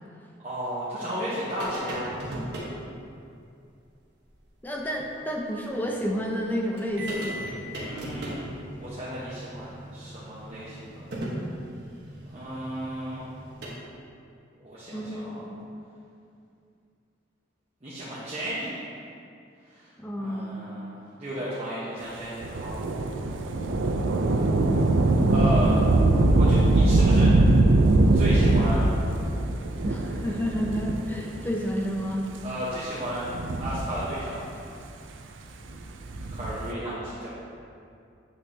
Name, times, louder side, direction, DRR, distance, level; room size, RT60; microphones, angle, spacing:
voice 1, 0.4-2.1 7.8-8.5 8.8-11.0 12.3-13.2 14.6-15.4 17.8-18.7 19.7-19.9 20.2-22.9 25.3-25.8 26.3-27.3 28.1-28.8 32.4-33.3 33.6-34.4 36.3-37.3, equal, 35° right, -10 dB, 1.0 m, -34 dB
sound 1, 1.6-2.8 4.3-4.4 4.8-4.9 6.4-6.5 6.8-13.7, right 1 dB, 60° right, 1.2 m, -37 dB
voice 2, 4.6-7.4 14.9-15.6 20.0-20.6 29.8-32.2, equal, 10° left, -1 dB, 0.5 m, -30 dB
Thunder / Rain, 22.4-31.4 32.1-32.2 33.1-34.4 35.9-36.7, right 2 dB, 90° right, 0.5 m, -22 dB
8.3 x 5.7 x 2.8 m, 2.5 s
head